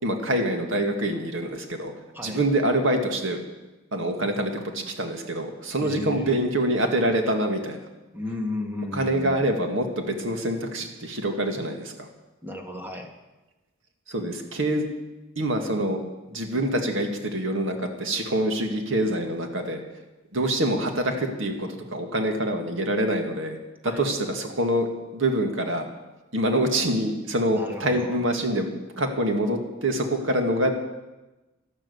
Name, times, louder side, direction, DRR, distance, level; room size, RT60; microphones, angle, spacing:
voice 1, 0.0-1.9 2.2-3.4 3.9-7.8 8.9-12.1 14.1-14.8 15.4-16.0 16.3-19.8 20.3-23.6 23.8-24.9 25.1-25.9 26.3-28.7 29.0-30.7, right 1 dB, 70° right, 4 dB, 2.1 m, -25 dB
voice 2, 5.8-6.3 8.1-9.5 12.4-13.1 23.8-24.1 27.5-28.2, left 2 dB, 10° right, 2 dB, 1.9 m, -34 dB
12.5 x 12.0 x 8.0 m, 1.1 s
head